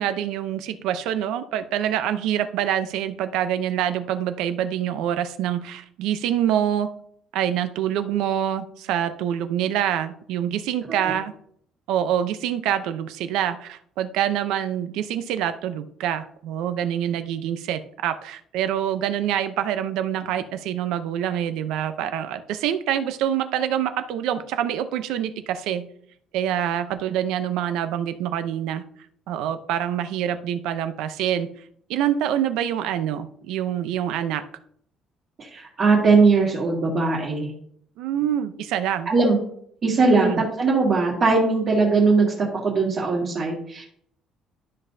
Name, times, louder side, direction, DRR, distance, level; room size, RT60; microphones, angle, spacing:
voice 1, 0.0-6.9 7.3-11.3 11.9-25.8 26.3-28.8 29.3-31.5 31.9-34.4 38.0-39.1 40.2-40.4, right 10 dB, 85° right, 10 dB, 0.7 m, -26 dB
voice 2, 35.4-37.5 39.1-39.4 39.8-43.8, right 4 dB, 35° right, -6 dB, 2.0 m, -20 dB
12.5 x 5.4 x 2.7 m, 0.65 s
cardioid pair, 165°, 0 cm